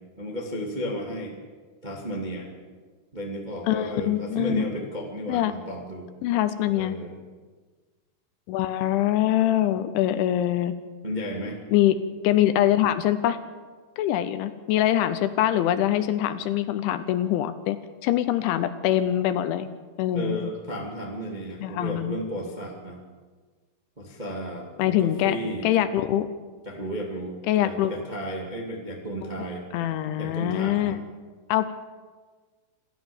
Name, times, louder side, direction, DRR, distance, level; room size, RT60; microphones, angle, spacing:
voice 1, 0.2-1.4 1.8-2.5 3.1-6.1 6.7-7.2 11.0-11.6 20.1-23.0 24.0-25.7 26.6-29.6 30.2-31.0, equal, 25° right, -1 dB, 1.0 m, -33 dB
voice 2, 3.7-4.7 5.3-5.5 6.2-6.9 8.5-10.8 11.7-12.0 12.2-13.4 14.0-17.8 18.0-19.7 20.0-20.5 21.6-22.2 24.8-25.4 25.6-26.3 27.5-27.9 29.7-31.0 31.5-31.8, left 12 dB, 80° left, 11 dB, 3.1 m, -24 dB
27.0 x 14.0 x 7.1 m, 1.4 s
omnidirectional pair, 5.7 m